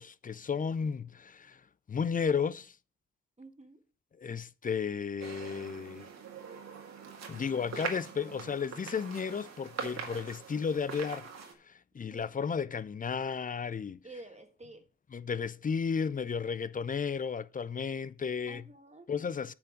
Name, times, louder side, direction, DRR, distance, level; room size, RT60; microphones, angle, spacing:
voice 1, 0.0-1.6 1.9-2.7 4.2-6.1 7.3-11.2 11.7-14.0 15.1-18.6 19.1-19.5, left 6 dB, 30° left, 0.5 m, -33 dB
voice 2, 3.4-3.8 12.1-12.3 14.0-14.9 18.5-19.1, right 2 dB, 25° right, 1.6 m, -50 dB
sound 1, 5.2-11.5, right 6 dB, 65° right, 2.0 m, -43 dB
8.7 x 4.5 x 6.3 m
hypercardioid pair, 45°, 29 cm